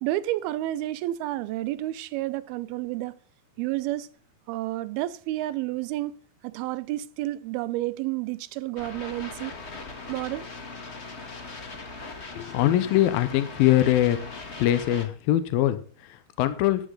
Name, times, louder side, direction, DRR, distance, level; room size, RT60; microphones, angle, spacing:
voice 1, 0.0-3.1 3.6-4.1 4.5-6.1 6.4-9.5 10.1-10.5, right 16 dB, 90° right, 2.6 m, -30 dB
sound 1, 8.8-15.1, left 3 dB, 65° left, 0.6 m, -40 dB
voice 2, 12.4-14.2 14.6-16.9, left 13 dB, 80° left, 2.6 m, -23 dB
13.5 x 10.5 x 3.9 m
omnidirectional pair, 4.3 m